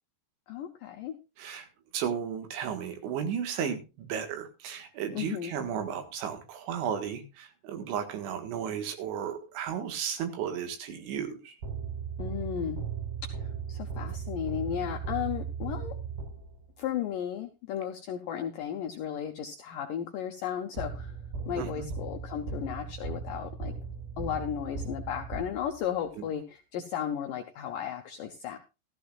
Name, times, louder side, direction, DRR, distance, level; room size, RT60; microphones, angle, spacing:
voice 1, 0.5-1.2 5.1-5.5 12.2-12.8 13.2-16.0 16.8-21.1 21.5-23.7 24.2-28.6, left 9 dB, 80° left, 4 dB, 1.9 m, -35 dB
voice 2, 1.4-1.7 1.9-11.6 21.6-21.9 26.2-26.3, right 8 dB, 90° right, 6 dB, 4.0 m, -34 dB
sound 1, 11.6-16.7 20.8-26.0, right 6 dB, 60° right, 7.0 m, -37 dB
14.5 x 14.0 x 2.5 m, 0.29 s
omnidirectional pair, 5.1 m